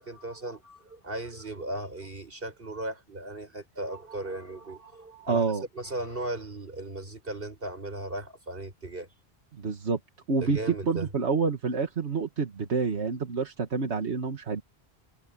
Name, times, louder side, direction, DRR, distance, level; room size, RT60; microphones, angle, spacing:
voice 1, 0.0-5.4 5.7-9.1 10.4-11.1, right 1 dB, 55° right, 6.2 m, -37 dB
voice 2, 5.3-5.6 9.6-10.0 10.3-14.6, right 4 dB, 85° right, 1.8 m, -28 dB
omnidirectional pair, 1.1 m